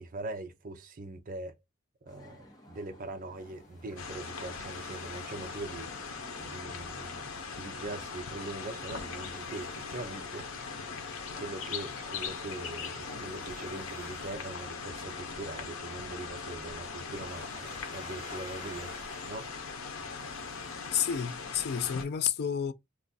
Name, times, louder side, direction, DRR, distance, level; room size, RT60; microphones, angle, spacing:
voice 1, 0.0-1.5 2.0-7.3 7.6-10.8 11.4-17.5 17.9-19.0 19.2-19.5, right 2 dB, 45° right, 0.5 m, -42 dB
sound 1, 2.1-7.4, left 1 dB, 20° left, 1.0 m, -55 dB
Waves surf, 3.3-22.1, left 2 dB, 35° left, 1.3 m, -53 dB
sound 2, 4.0-22.0, left 5 dB, 85° left, 0.7 m, -40 dB
voice 2, 20.9-22.7, left 8 dB, 55° left, 0.4 m, -30 dB
2.5 x 2.4 x 3.8 m
head